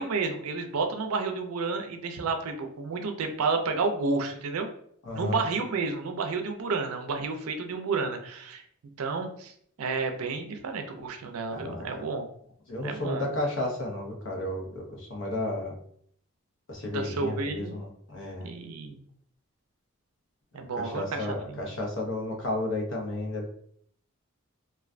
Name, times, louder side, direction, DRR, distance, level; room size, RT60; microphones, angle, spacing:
voice 1, 0.0-4.7 5.1-8.6 9.0-9.5 9.8-12.3 12.8-13.4 16.8-17.8 18.4-19.0 20.5-21.7, right 4 dB, 90° right, 5 dB, 0.4 m, -31 dB
voice 2, 5.0-5.4 11.5-11.8 12.7-15.7 16.7-18.5 20.8-23.5, left 1 dB, 60° left, 0 dB, 0.7 m, -32 dB
2.3 x 2.1 x 2.4 m, 0.65 s
head